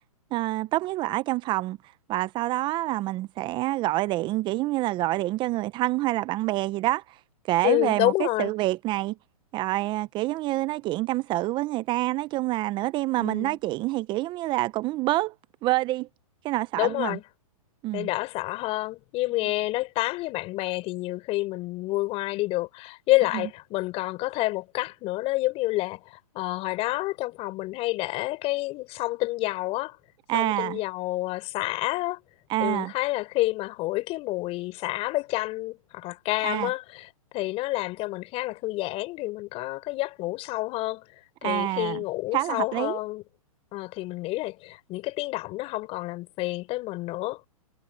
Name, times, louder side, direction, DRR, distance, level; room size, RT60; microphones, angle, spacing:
voice 1, 0.3-1.8 2.1-7.2 7.5-9.1 9.5-15.3 15.6-16.1 16.4-17.2 17.8-18.1 23.3-23.4 30.3-30.8 32.5-32.9 36.4-36.7 41.4-42.0 42.3-43.0, right 17 dB, 25° right, 0.6 m, -27 dB
voice 2, 7.6-8.5 13.2-13.6 16.8-17.2 17.9-30.0 30.3-32.2 32.6-41.0 41.4-43.2 43.7-47.4, left 19 dB, 30° left, 4.2 m, -29 dB
hypercardioid pair, 135°, 19 cm